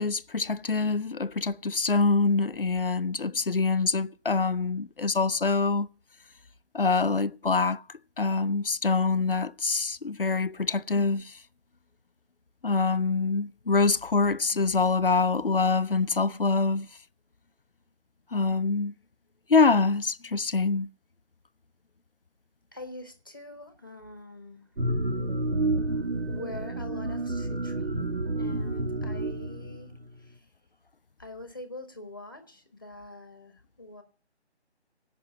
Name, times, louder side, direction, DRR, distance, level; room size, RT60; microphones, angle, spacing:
voice 1, 0.0-5.9 6.7-7.8 8.2-11.4 12.6-16.9 18.3-18.9 19.5-20.9, left 4 dB, 55° left, 0.6 m, -25 dB
voice 2, 22.7-24.7 26.3-29.9 30.2-30.5 31.2-34.0, left 2 dB, 20° left, 1.4 m, -44 dB
sound 1, 24.8-30.1, right 2 dB, 60° right, 1.4 m, -30 dB
17.0 x 6.2 x 9.7 m
figure-of-eight pair, 175°, 34 cm